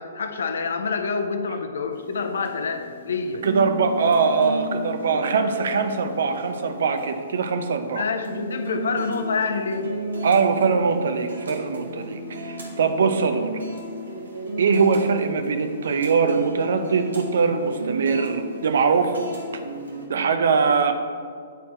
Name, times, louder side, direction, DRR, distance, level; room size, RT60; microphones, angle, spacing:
voice 1, 0.0-3.5 8.0-10.0, left 4 dB, 65° left, 7 dB, 0.6 m, -27 dB
sound 1, 1.9-20.1, right 1 dB, 80° right, 1.5 m, -34 dB
voice 2, 3.4-8.0 10.2-13.5 14.6-19.2 20.1-20.9, right 5 dB, 65° right, 8 dB, 0.6 m, -22 dB
9.1 x 4.2 x 4.5 m, 2.1 s
figure-of-eight pair, 115°, 0 cm